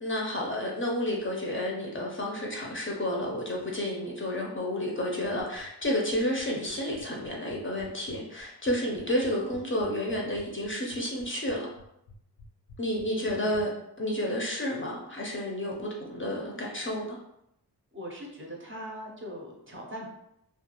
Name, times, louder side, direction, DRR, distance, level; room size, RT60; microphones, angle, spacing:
voice 1, 0.0-11.7 12.8-13.7 14.0-17.2, left 1 dB, 30° left, -2 dB, 0.5 m, -31 dB
sound 1, 5.2-13.6, left 2 dB, 75° left, 0.6 m, -50 dB
voice 2, 13.1-13.8 17.9-20.1, equal, 30° right, -1 dB, 0.5 m, -41 dB
2.4 x 2.3 x 2.9 m, 0.79 s
wide cardioid pair, 90°, 39 cm